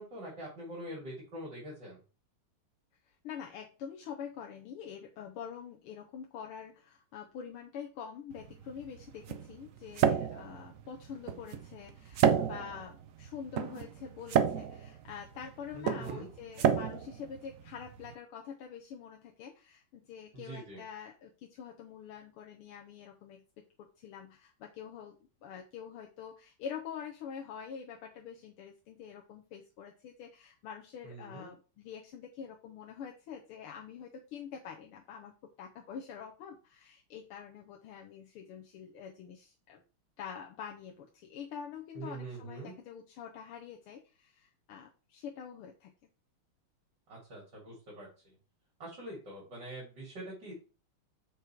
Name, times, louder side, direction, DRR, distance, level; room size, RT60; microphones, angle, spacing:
voice 1, 0.0-2.0 15.7-16.3 20.3-20.8 31.0-31.5 41.9-42.7 47.1-48.4 48.8-50.5, right 1 dB, 55° right, -5 dB, 3.9 m, -44 dB
voice 2, 3.1-39.8 40.2-45.9, left 7 dB, 90° left, 1 dB, 1.9 m, -46 dB
sound 1, 8.3-18.1, right 8 dB, 85° right, 0.7 m, -32 dB
6.6 x 5.3 x 4.5 m, 0.32 s
omnidirectional pair, 2.3 m